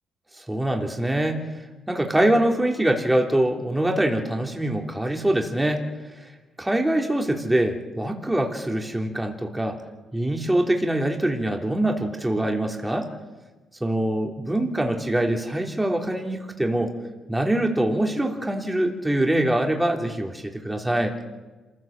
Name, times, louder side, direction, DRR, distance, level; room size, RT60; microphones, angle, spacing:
voice 1, 0.4-1.6 1.9-5.8 6.6-9.8 10.1-13.1 13.8-16.9 17.3-21.2, right 1 dB, 10° right, 2 dB, 3.3 m, -24 dB
27.0 x 16.0 x 7.5 m, 1.3 s
cardioid pair, 90°, 0 cm